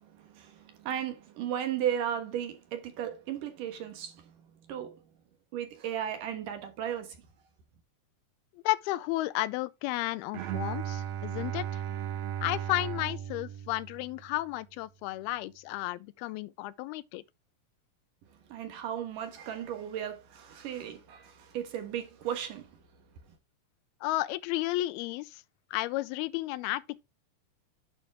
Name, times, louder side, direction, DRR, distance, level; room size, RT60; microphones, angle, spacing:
voice 1, 0.0-4.2 4.7-5.0 5.5-7.2 18.5-22.7, right 9 dB, 65° right, 2.8 m, -35 dB
voice 2, 8.6-11.8 12.4-17.2 24.0-25.4 25.7-27.0, left 17 dB, 90° left, 2.5 m, -33 dB
Bowed string instrument, 10.3-14.5, right 10 dB, 85° right, 1.6 m, -36 dB
9.1 x 6.5 x 3.4 m
omnidirectional pair, 4.4 m